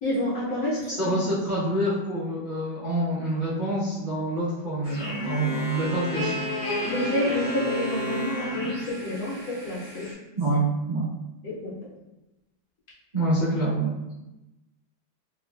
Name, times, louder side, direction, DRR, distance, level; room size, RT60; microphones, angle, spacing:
voice 1, 0.0-1.0 6.8-10.1 11.4-11.8, left 1 dB, 65° left, -6 dB, 1.0 m, -28 dB
voice 2, 1.0-6.4 10.4-11.1 13.1-14.1, right 1 dB, 35° right, -12 dB, 0.8 m, -26 dB
sound 1, 4.8-10.1, left 1 dB, 50° left, 0.5 m, -32 dB
3.0 x 2.4 x 2.2 m, 0.99 s
omnidirectional pair, 1.9 m